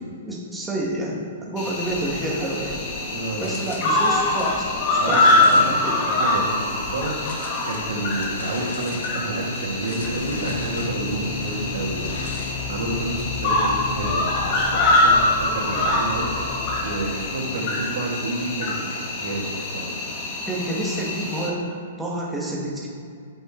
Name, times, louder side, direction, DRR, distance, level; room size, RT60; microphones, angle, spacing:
voice 1, 0.2-2.9 3.4-6.0 20.5-22.9, right 1 dB, 5° right, -5 dB, 1.6 m, -29 dB
Cricket, 1.6-21.5, left 2 dB, 35° left, 1.4 m, -24 dB
sound 1, 1.8-14.0, left 3 dB, 85° left, 1.5 m, -39 dB
voice 2, 3.1-3.7 5.0-19.9, right 2 dB, 70° right, -1 dB, 2.2 m, -30 dB
sound 2, 10.0-17.2, left 6 dB, 55° left, 2.1 m, -35 dB
8.3 x 7.9 x 3.8 m, 2.3 s
hypercardioid pair, 160°, 0 cm